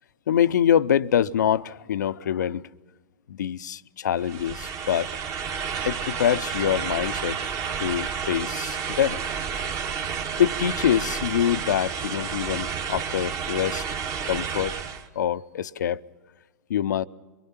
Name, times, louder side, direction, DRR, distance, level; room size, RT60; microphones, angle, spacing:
voice 1, 0.3-2.6 3.3-5.1 5.8-7.4 7.8-9.2 10.4-13.8 14.3-14.7 15.2-16.0 16.7-17.1, left 9 dB, 75° left, 0.6 m, -25 dB
sound 1, 4.2-15.1, right 7 dB, 35° right, 1.5 m, -31 dB
23.5 x 22.5 x 5.9 m
hypercardioid pair, 105°, 10 cm